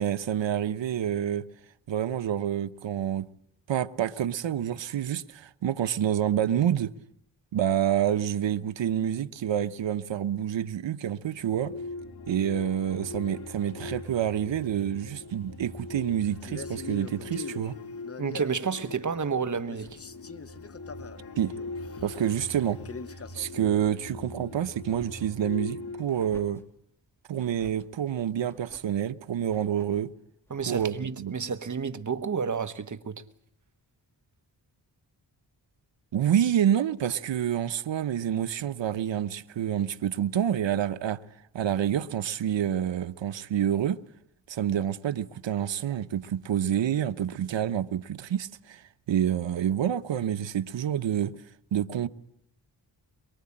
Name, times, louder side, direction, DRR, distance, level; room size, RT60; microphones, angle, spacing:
voice 1, 0.0-1.4 1.9-3.3 3.7-6.9 7.5-11.7 12.3-17.7 21.4-21.5 22.0-22.8 23.3-26.6 27.3-30.1 30.7-31.3 36.1-41.2 41.5-44.0 44.5-48.8 49.1-51.3 51.7-52.1, right 10 dB, 75° right, 1.0 m, -28 dB
sound 1, 11.3-26.1, left 3 dB, 55° left, 3.2 m, -41 dB
Male speech man speaking, 16.4-19.4 19.7-23.8, left 5 dB, 30° left, 0.9 m, -43 dB
voice 2, 18.2-20.0 30.5-33.2, right 6 dB, 40° right, 1.4 m, -30 dB
sound 2, 19.7-21.8 22.1-22.7 23.0-24.4 24.8-25.5 26.0-26.7 27.3-27.9 28.4-29.0 29.4-30.0 30.4-31.1, equal, 5° left, 3.0 m, -56 dB
23.0 x 23.0 x 8.7 m
wide cardioid pair, 90°, 45 cm